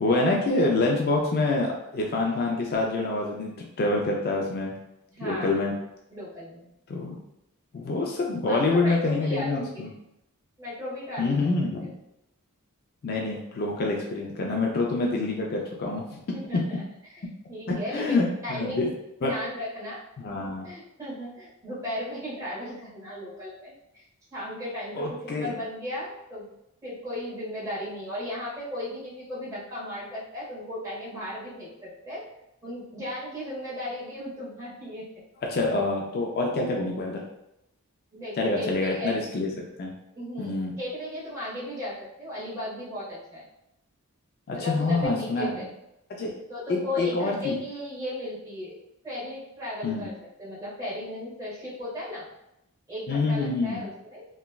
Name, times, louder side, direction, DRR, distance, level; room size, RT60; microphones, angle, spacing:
voice 1, 0.0-4.7 5.2-5.7 6.9-7.2 7.7-9.9 11.2-11.9 13.0-16.2 16.5-16.6 17.7-18.9 19.2-19.3 20.2-20.7 25.0-25.5 35.5-37.3 38.4-39.5 39.8-39.9 40.4-40.7 44.5-45.5 46.1-46.3 46.7-47.5 49.8-50.1 53.1-53.9, left 3 dB, 45° left, 0 dB, 0.3 m, -26 dB
voice 2, 5.1-5.6 6.1-6.7 8.4-10.0 10.6-11.5 11.8-11.9 16.3-16.8 17.2-18.9 19.2-20.0 20.4-24.0 24.3-26.5 26.8-32.2 32.6-35.0 38.1-39.2 40.1-43.4 44.5-45.7 46.5-48.7 49.0-50.1 50.4-52.3 52.9-54.3, left 1 dB, 15° right, -9 dB, 1.2 m, -36 dB
3.0 x 2.2 x 2.2 m, 0.84 s
head